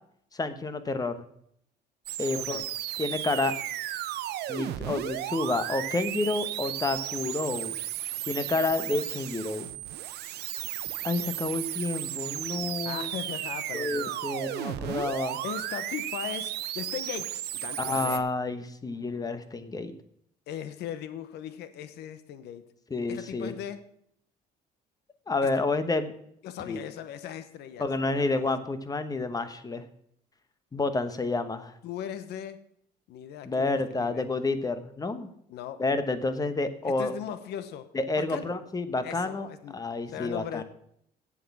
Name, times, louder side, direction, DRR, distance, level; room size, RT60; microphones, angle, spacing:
voice 1, 0.3-1.2 2.2-2.6 3.0-3.6 4.5-7.8 8.3-9.7 11.0-13.1 13.7-15.4 17.8-19.9 22.9-23.5 25.3-26.1 26.7-26.8 27.8-29.8 30.7-31.7 33.4-35.3 35.8-37.1 37.9-40.6, left 3 dB, 20° left, 11 dB, 1.1 m, -29 dB
sound 1, 2.1-18.2, right 13 dB, 75° right, 0.8 m, -34 dB
voice 2, 2.2-2.7 12.8-14.2 15.4-18.2 20.5-22.6 23.1-23.8 26.4-28.4 31.8-32.6 33.1-34.3 35.5-35.8 36.8-37.9 38.2-38.6 39.0-39.8 40.1-40.6, left 10 dB, 80° left, 12 dB, 1.0 m, -38 dB
8.6 x 7.8 x 7.0 m, 0.70 s
cardioid pair, 110°, 17 cm